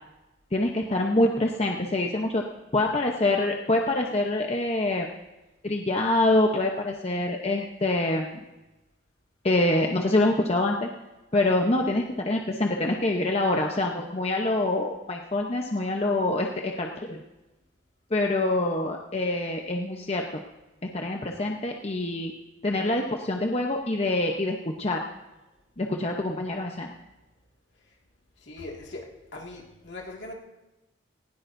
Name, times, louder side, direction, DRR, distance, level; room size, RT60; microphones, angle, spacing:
voice 1, 0.5-2.4 2.7-5.1 5.6-8.4 9.4-10.9 11.3-17.2 18.1-20.3 20.8-22.3 22.6-25.0 25.8-26.9, left 2 dB, 30° left, 1 dB, 0.8 m, -25 dB
voice 2, 28.4-29.1 29.3-30.3, left 2 dB, 70° left, -2 dB, 2.1 m, -40 dB
19.0 x 16.5 x 2.7 m, 1.0 s
head